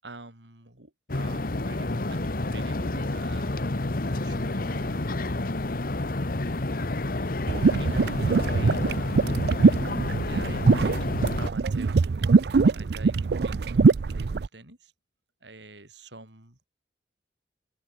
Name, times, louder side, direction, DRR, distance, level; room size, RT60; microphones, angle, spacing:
voice 1, 0.0-3.5 4.1-5.6 7.8-9.8 10.1-12.3 12.7-13.2 13.4-14.9 15.4-16.7, right 2 dB, 85° right, 5.2 m, -47 dB
sound 1, 1.1-11.5, left 2 dB, 55° left, 1.2 m, -29 dB
sound 2, 7.5-14.5, right 4 dB, 65° right, 0.5 m, -22 dB
open air
head